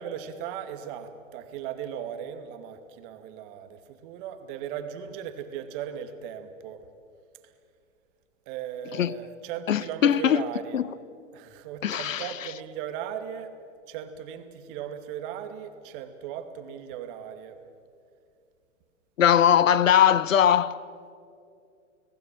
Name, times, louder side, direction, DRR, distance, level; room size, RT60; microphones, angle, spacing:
voice 1, 0.0-6.8 7.4-7.5 8.5-10.8 11.3-13.5 13.9-17.6, right 9 dB, 45° right, 2.4 m, -37 dB
voice 2, 9.7-10.4 10.7-10.8 11.8-12.3 19.2-20.8, left 9 dB, 85° left, 1.0 m, -20 dB
30.0 x 19.0 x 7.6 m
hypercardioid pair, 125°, 38 cm